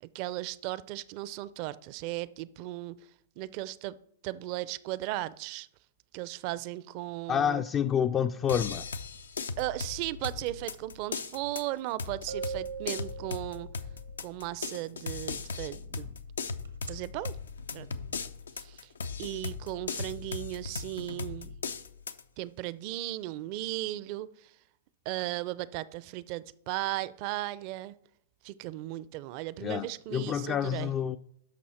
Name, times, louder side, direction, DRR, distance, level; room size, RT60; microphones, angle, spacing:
voice 1, 0.0-3.0 3.4-4.0 4.2-5.7 6.1-7.6 9.6-13.7 14.2-16.1 16.9-17.4 17.7-17.9 18.6-18.8 19.2-21.6 22.4-24.3 25.1-27.9 28.4-30.9, right 16 dB, 45° right, 0.5 m, -36 dB
voice 2, 7.3-8.8 29.6-31.2, left 8 dB, 30° left, 0.4 m, -28 dB
sound 1, 8.5-22.2, left 4 dB, 85° left, 0.6 m, -38 dB
sound 2, 12.3-14.0 16.7-16.9, right 7 dB, 90° right, 1.3 m, -39 dB
11.5 x 6.1 x 4.3 m
hypercardioid pair, 115°, 0 cm